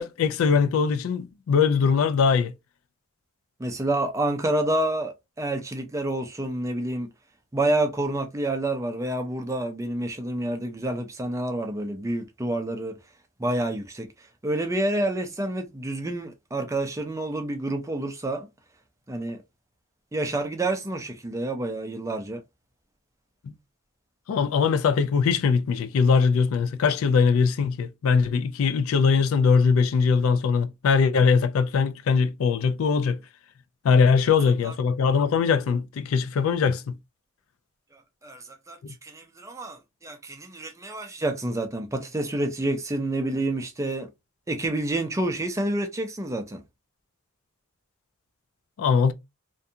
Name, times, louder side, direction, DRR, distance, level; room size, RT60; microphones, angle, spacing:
voice 1, 0.0-2.5 24.3-33.2 33.8-36.8 38.8-38.9 48.8-49.1, left 5 dB, 70° left, 0.3 m, -21 dB
voice 2, 3.6-7.1 7.5-12.9 13.4-14.1 14.4-18.5 19.1-19.4 20.1-22.4 34.6-34.7 38.2-44.1 44.5-46.6, right 1 dB, 15° right, 0.4 m, -28 dB
2.6 x 2.3 x 2.6 m
head